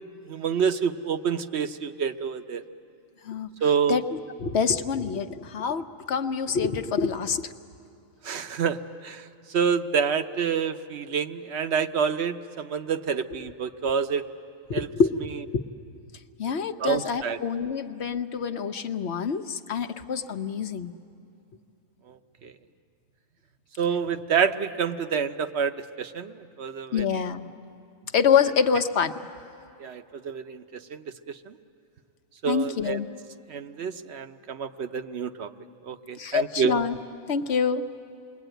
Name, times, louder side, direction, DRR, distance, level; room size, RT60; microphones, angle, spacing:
voice 1, 0.3-2.6 3.6-4.0 8.2-8.8 9.0-9.2 9.5-14.2 14.7-14.9 16.8-17.4 22.1-22.2 22.4-22.5 23.8-27.0 29.8-31.0 31.3-31.5 32.4-33.0 33.5-35.5 35.8-36.8, right 6 dB, 60° right, 9 dB, 1.0 m, -27 dB
voice 2, 4.4-7.5 14.7-15.6 16.4-20.9 26.9-27.5 28.1-29.2 32.4-33.1 36.2-37.0 37.3-37.9, left 6 dB, 55° left, 9 dB, 1.0 m, -26 dB
29.0 x 21.5 x 9.1 m, 2.6 s
omnidirectional pair, 1.4 m